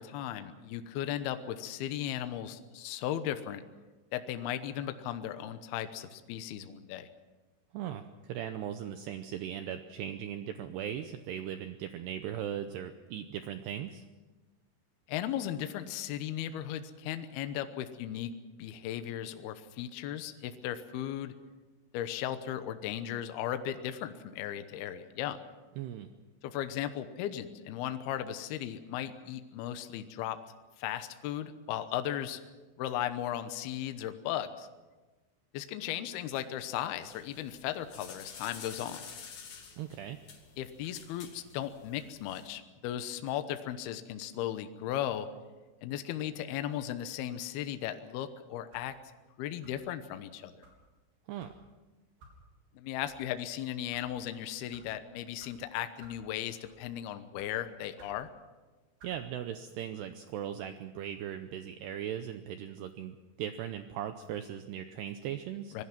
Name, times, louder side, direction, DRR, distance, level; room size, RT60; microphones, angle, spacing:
voice 1, 0.0-3.6 4.1-7.1 15.1-18.3 18.6-21.3 21.9-25.4 26.4-30.4 30.8-32.4 32.8-34.7 35.5-39.0 40.6-45.3 45.8-48.9 49.4-50.6 52.7-58.3 65.7-65.8, left 11 dB, 75° left, 9 dB, 2.4 m, -36 dB
voice 2, 7.7-14.0 25.8-26.1 39.8-40.2 51.3-51.5 59.0-65.8, right 10 dB, 80° right, 8 dB, 2.4 m, -38 dB
sound 1, 37.0-42.5, left 6 dB, 50° left, 2.8 m, -50 dB
sound 2, 48.7-49.0 49.6-49.9 50.6-50.8 51.4-51.6 52.2-52.4 53.0-53.1 53.7-54.1 54.7-54.9 55.4-55.5 56.0-56.2 56.6-56.9 57.4-57.5 58.0-58.2 59.0-59.2, right 2 dB, 55° right, 5.8 m, -57 dB
25.0 x 20.0 x 6.1 m, 1.2 s
omnidirectional pair, 5.7 m